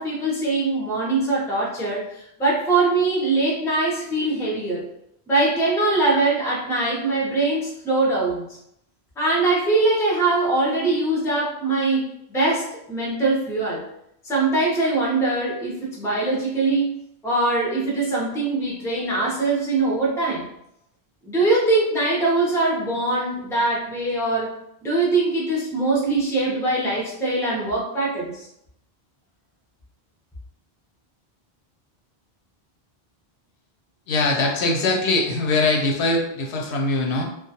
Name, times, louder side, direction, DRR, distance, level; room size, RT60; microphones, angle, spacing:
voice 1, 0.0-4.8 5.3-8.5 9.2-13.8 14.2-16.9 17.2-20.5 21.2-24.5 24.8-28.5, right 2 dB, 5° left, -5 dB, 0.4 m, -22 dB
voice 2, 34.1-37.2, left 2 dB, 85° left, 1 dB, 0.8 m, -22 dB
2.3 x 2.1 x 2.7 m, 0.78 s
omnidirectional pair, 1.1 m